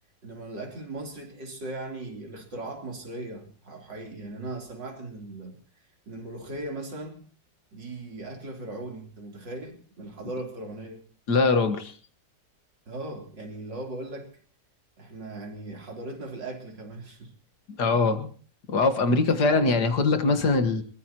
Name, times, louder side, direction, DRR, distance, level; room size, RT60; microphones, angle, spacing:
voice 1, 0.2-5.6 6.1-7.3 7.7-11.0 12.9-14.3 15.0-17.3, right 2 dB, 80° right, 2 dB, 4.4 m, -38 dB
voice 2, 11.3-11.9 17.8-18.3 18.7-20.8, left 3 dB, 65° left, 8 dB, 2.2 m, -22 dB
22.5 x 21.0 x 3.0 m, 0.42 s
omnidirectional pair, 1.9 m